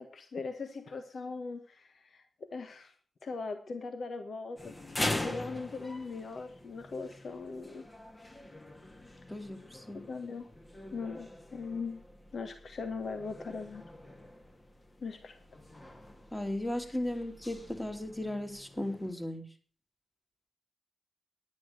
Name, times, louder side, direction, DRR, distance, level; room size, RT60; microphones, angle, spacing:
voice 1, 0.0-2.9 3.2-4.7 5.0-7.9 10.1-10.5 10.9-12.0 12.3-13.8 15.0-15.6 16.9-17.0, left 4 dB, 70° left, 8 dB, 1.4 m, -40 dB
sound 1, 4.6-19.1, left 1 dB, 30° left, 1.6 m, -43 dB
voice 2, 9.3-10.0 16.3-19.4, left 1 dB, 10° left, 6 dB, 2.5 m, -36 dB
10.5 x 9.8 x 6.6 m, 0.40 s
cardioid pair, 65°, 0 cm